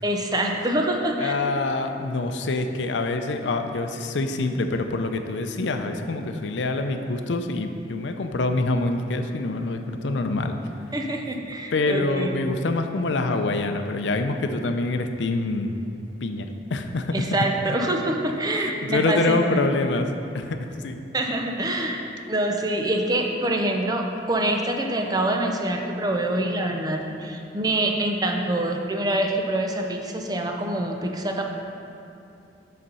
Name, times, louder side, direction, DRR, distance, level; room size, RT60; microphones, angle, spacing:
voice 1, 0.0-1.3 10.9-12.4 17.1-19.6 21.1-22.0 22.3-31.4, right 1 dB, 20° right, 2 dB, 0.6 m, -25 dB
voice 2, 1.2-10.8 11.7-15.8 16.2-17.2 18.5-21.0, left 2 dB, 90° left, 6 dB, 0.5 m, -26 dB
7.8 x 4.2 x 5.5 m, 2.8 s
head